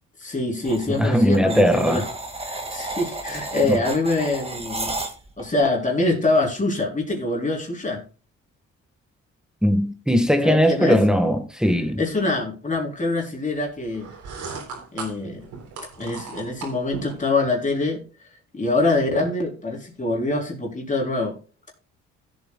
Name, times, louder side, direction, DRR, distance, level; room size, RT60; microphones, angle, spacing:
voice 1, 0.2-2.1 2.5-4.9 5.4-8.0 10.4-11.0 12.0-14.1 14.9-15.4 16.0-18.0 18.5-21.3, left 2 dB, 25° left, 3.8 m, -24 dB
sound 1, 0.6-5.5, right 2 dB, 20° right, 2.2 m, -33 dB
voice 2, 0.9-2.0 3.7-3.8 9.6-12.0, equal, ahead, 1.6 m, -19 dB
sound 2, 13.9-17.2, right 4 dB, 85° right, 3.7 m, -36 dB
16.0 x 8.0 x 2.4 m
cardioid pair, 90°, 30 cm